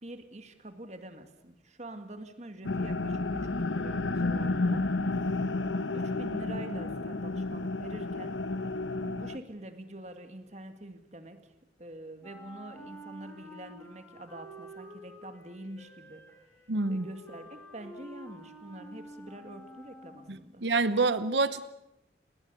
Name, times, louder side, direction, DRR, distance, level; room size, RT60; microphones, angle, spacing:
voice 1, 0.0-4.9 5.9-8.4 9.0-11.5 11.8-16.3 16.9-20.7, right 1 dB, 35° right, 8 dB, 2.0 m, -46 dB
sound 1, 2.6-9.4, left 2 dB, 90° left, 1.2 m, -31 dB
Wind instrument woodwind instrument, 12.2-20.5, equal, 10° left, 4.9 m, -49 dB
voice 2, 16.7-17.1 20.3-21.6, right 3 dB, 70° right, 13 dB, 0.9 m, -27 dB
28.5 x 20.5 x 6.9 m, 0.86 s
head